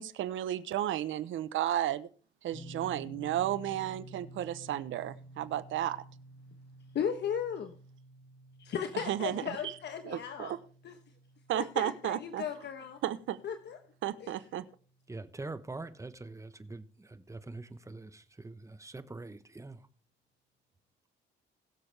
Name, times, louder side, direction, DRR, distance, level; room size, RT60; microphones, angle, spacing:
voice 1, 0.0-2.1 2.4-6.0 8.9-9.7 10.1-10.6 11.5-12.4 13.0-13.4 14.0-14.6, right 12 dB, 80° right, 0.9 m, -33 dB
sound 1, 2.5-15.4, right 1 dB, 35° left, 2.8 m, -52 dB
voice 2, 6.9-7.7 8.6-10.6 10.8-11.0 11.5-13.0 13.4-13.8 14.2-14.3, left 8 dB, 60° left, 1.1 m, -36 dB
voice 3, 15.1-19.9, right 2 dB, 15° right, 1.1 m, -44 dB
21.0 x 7.1 x 3.4 m
cardioid pair, 90°, 20 cm